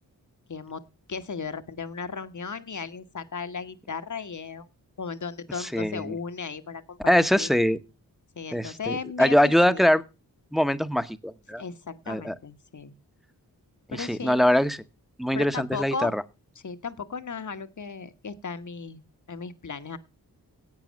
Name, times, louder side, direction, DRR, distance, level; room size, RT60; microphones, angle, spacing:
voice 1, 0.5-0.8 1.1-4.7 5.0-7.5 8.3-9.8 11.6-12.9 13.9-14.5 15.3-16.1 16.6-19.0 19.3-20.0, left 5 dB, 50° left, 10 dB, 1.2 m, -36 dB
voice 2, 5.6-6.1 7.1-7.8 8.5-10.0 10.5-11.6 12.1-12.3 13.9-14.8 15.2-16.2, equal, ahead, 12 dB, 0.9 m, -23 dB
11.0 x 8.3 x 6.2 m, 0.30 s
cardioid pair, 40°, 39 cm